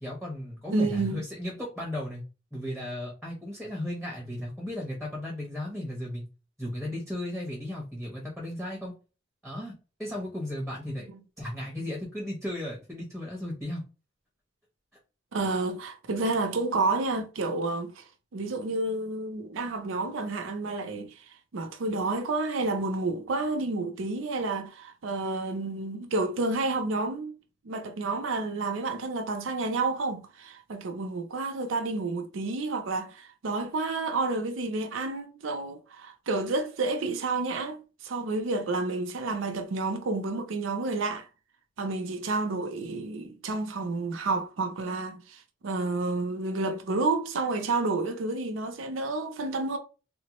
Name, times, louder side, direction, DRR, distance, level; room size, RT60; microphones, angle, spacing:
voice 1, 0.0-2.2 2.5-6.3 6.6-8.9 9.4-9.7 10.0-11.1 11.4-13.8, left 1 dB, ahead, 1.0 m, -35 dB
voice 2, 0.7-1.2 15.3-18.0 18.3-27.3 27.6-41.3 41.8-49.8, right 3 dB, 85° right, 0.5 m, -30 dB
3.6 x 2.0 x 2.9 m
head